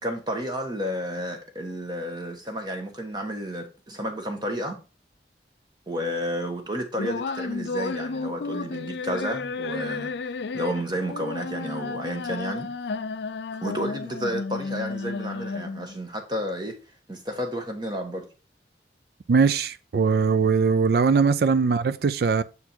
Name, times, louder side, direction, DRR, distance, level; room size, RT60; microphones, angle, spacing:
voice 1, 0.0-4.8 5.9-10.1 10.5-12.7 13.6-16.8 17.1-18.3, equal, 25° right, 1.4 m, -31 dB
sound 1, 7.0-16.0, left 4 dB, 70° left, 0.5 m, -32 dB
voice 2, 19.3-22.4, right 5 dB, 55° right, 0.4 m, -21 dB
6.8 x 4.5 x 4.3 m
head